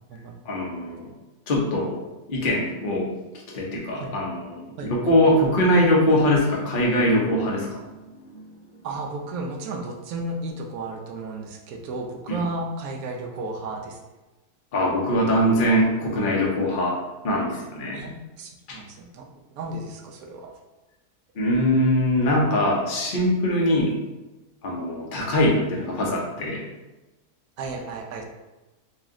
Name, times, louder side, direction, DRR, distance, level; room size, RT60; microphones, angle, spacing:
voice 1, 0.5-1.1 1.5-2.0 2.3-3.1 3.5-8.5 12.3-12.4 14.7-17.0 17.2-18.0 18.7-18.8 21.4-24.0 24.6-26.6, left 1 dB, 45° left, -2 dB, 0.8 m, -22 dB
voice 2, 4.8-5.4 8.8-14.0 17.9-19.2 19.5-20.5 27.6-28.2, right 2 dB, 70° right, 2 dB, 1.0 m, -33 dB
4.1 x 2.4 x 3.7 m, 1.1 s
omnidirectional pair, 1.7 m